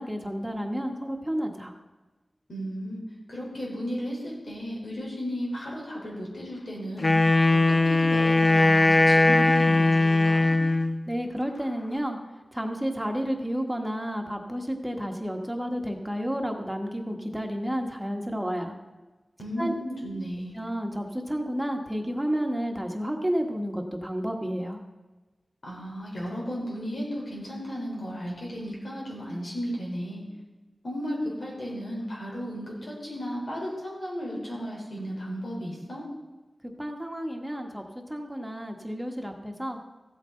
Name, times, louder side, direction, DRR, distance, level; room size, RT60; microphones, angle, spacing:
voice 1, 0.0-1.7 11.1-12.2 12.5-18.7 19.6-19.7 20.5-24.8 36.8-37.8 38.1-39.8, equal, 10° right, 2 dB, 1.4 m, -31 dB
voice 2, 2.5-3.0 3.3-7.1 7.5-10.5 19.4-20.6 25.6-30.2 30.8-36.0, equal, 90° left, -4 dB, 4.1 m, -34 dB
Wind instrument woodwind instrument, 7.0-11.0, left 2 dB, 40° left, 0.6 m, -20 dB
15.0 x 8.3 x 3.9 m, 1.2 s
wide cardioid pair, 80°, 0 cm